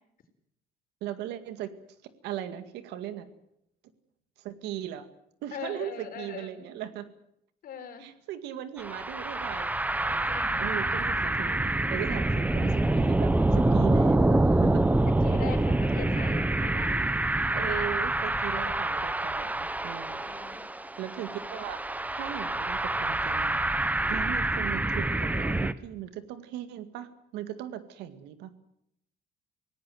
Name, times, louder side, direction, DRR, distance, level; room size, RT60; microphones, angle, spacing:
voice 1, 1.0-1.7 2.0-3.3 4.4-5.1 5.4-7.1 8.0-9.7 10.0-15.0 16.9-17.0 17.5-20.2 21.0-23.6 24.1-28.6, right 11 dB, 90° right, 11 dB, 2.0 m, -38 dB
voice 2, 5.5-6.7 7.6-8.1 10.3-10.7 12.1-12.2 15.2-16.9 17.5-17.9 18.4-18.8 20.2-20.6 24.0-24.4, left 7 dB, 60° left, 6 dB, 4.8 m, -41 dB
sound 1, 8.8-25.7, right 2 dB, 10° right, 0.9 m, -26 dB
25.5 x 17.5 x 7.8 m, 0.78 s
cardioid pair, 110°, 17 cm